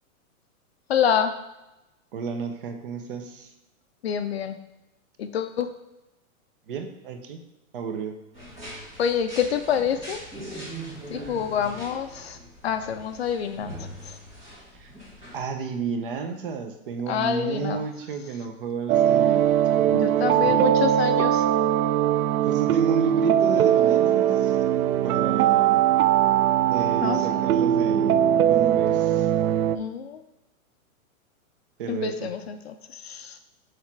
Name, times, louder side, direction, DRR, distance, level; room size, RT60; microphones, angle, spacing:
voice 1, 0.9-1.3 4.0-4.6 5.2-5.7 9.0-10.2 11.1-12.4 12.6-13.7 14.1-14.2 17.1-17.8 19.9-21.4 27.0-27.5 29.7-30.2 31.9-33.3, left 8 dB, 50° left, 9 dB, 0.5 m, -27 dB
voice 2, 2.1-3.5 6.7-7.4 7.7-8.1 14.8-14.9 15.3-20.7 22.4-24.6 25.0-25.8 26.7-28.2 28.5-29.3 31.8-32.3, right 5 dB, 40° right, 6 dB, 0.8 m, -32 dB
sound 1, 8.3-15.4, right 1 dB, 15° right, 1.7 m, -41 dB
sound 2, 18.9-29.8, right 11 dB, 85° right, 0.6 m, -21 dB
7.4 x 3.3 x 5.9 m, 0.95 s
hypercardioid pair, 170°, 42 cm